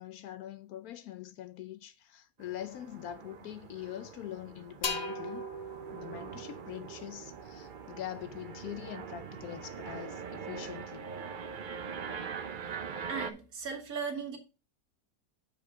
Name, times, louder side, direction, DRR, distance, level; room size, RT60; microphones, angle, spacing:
voice 1, 0.0-5.5 5.9-11.1, left 12 dB, 70° left, 1.0 m, -43 dB
sound 1, 2.4-13.3, right 6 dB, 85° right, 0.4 m, -43 dB
sound 2, 4.8-8.5, left 2 dB, 45° left, 1.2 m, -40 dB
voice 2, 13.1-14.4, right 5 dB, 60° right, 1.8 m, -37 dB
6.7 x 5.2 x 4.9 m
omnidirectional pair, 1.8 m